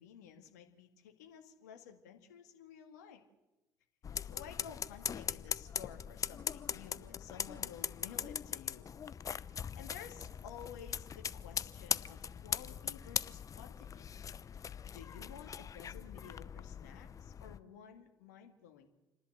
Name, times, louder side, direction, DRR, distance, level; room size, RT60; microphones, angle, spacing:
voice 1, 0.0-3.2 4.2-8.9 9.8-14.1 14.9-18.9, left 8 dB, 80° left, 4 dB, 2.1 m, -53 dB
sound 1, 4.0-17.6, left 7 dB, 40° left, 0.8 m, -41 dB
29.0 x 11.0 x 8.1 m, 1.0 s
hypercardioid pair, 60°, 9 cm